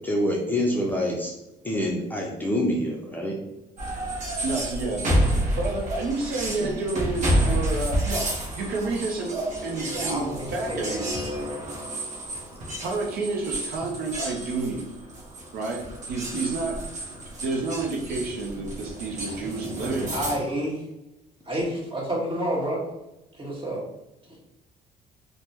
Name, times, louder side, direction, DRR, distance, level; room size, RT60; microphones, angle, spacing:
voice 1, 0.0-1.3 1.6-3.4, left 1 dB, 10° left, -2 dB, 0.5 m, -26 dB
sound 1, 3.8-20.4, equal, 45° right, 0.9 m, -30 dB
voice 2, 4.4-5.2 5.6-10.3 10.5-11.1 12.8-14.8 15.5-16.8 17.4-20.3, right 3 dB, 65° right, 0 dB, 0.6 m, -29 dB
voice 3, 9.9-11.0 20.1-20.8 21.5-22.8 23.3-23.8, right 1 dB, 30° right, -6 dB, 1.5 m, -29 dB
3.4 x 2.1 x 2.8 m, 0.93 s
cardioid pair, 110°, 17 cm